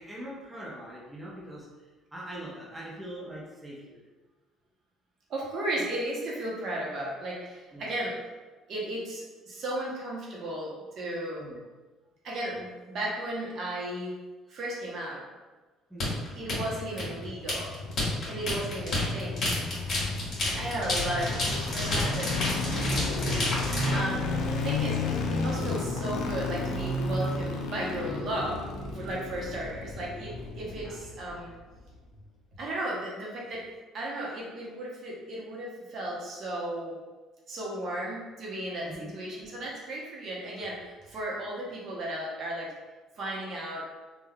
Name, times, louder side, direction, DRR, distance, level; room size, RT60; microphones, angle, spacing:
voice 1, 0.0-4.0 7.7-7.9 11.4-11.6 15.9-16.2 24.2-24.5 30.7-31.0 38.8-39.2 40.5-40.6, right 1 dB, 10° right, -5 dB, 0.7 m, -42 dB
voice 2, 5.3-8.1 8.7-11.4 12.2-14.2 14.5-15.2 16.3-17.7 18.2-19.5 20.6-22.3 22.9-24.3 24.6-28.6 28.9-31.5 32.6-33.6 33.9-37.0 37.5-38.9 39.1-42.7 43.2-43.8, right 1 dB, 55° right, -4 dB, 0.8 m, -35 dB
sound 1, 16.0-24.0, left 1 dB, 45° left, 1.5 m, -30 dB
sound 2, 16.3-31.5 31.8-31.9, left 3 dB, 75° left, 0.4 m, -33 dB
3.4 x 2.2 x 2.3 m, 1.2 s
cardioid pair, 100°, 0 cm